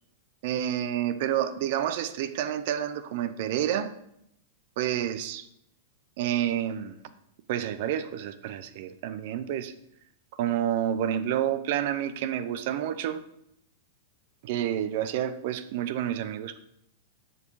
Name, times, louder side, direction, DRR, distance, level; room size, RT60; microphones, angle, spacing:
voice 1, 0.4-3.9 4.8-5.5 6.2-7.0 7.5-9.7 10.4-13.2 14.4-16.6, right 10 dB, 60° right, 13 dB, 0.8 m, -29 dB
7.9 x 6.9 x 4.8 m, 0.77 s
hypercardioid pair, 120°, 0 cm